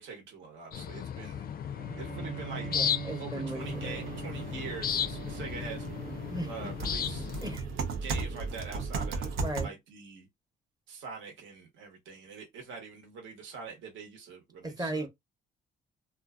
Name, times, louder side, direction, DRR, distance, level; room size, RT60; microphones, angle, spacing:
voice 1, 0.0-1.4 2.0-2.7 3.2-5.8 6.4-7.3 8.0-9.3 9.6-10.3 10.9-15.1, right 5 dB, 75° right, 1.1 m, -44 dB
sound 1, 0.7-7.6, left 8 dB, 50° left, 0.4 m, -35 dB
Bowed string instrument, 1.7-7.2, right 8 dB, 40° right, 0.4 m, -43 dB
voice 2, 2.7-4.0 6.3-6.7 7.4-7.7 9.4-9.7 14.6-15.1, right 1 dB, 20° right, 0.8 m, -36 dB
sound 2, 3.6-9.7, right 4 dB, 90° right, 0.7 m, -37 dB
2.6 x 2.3 x 2.3 m
cardioid pair, 90°, 20 cm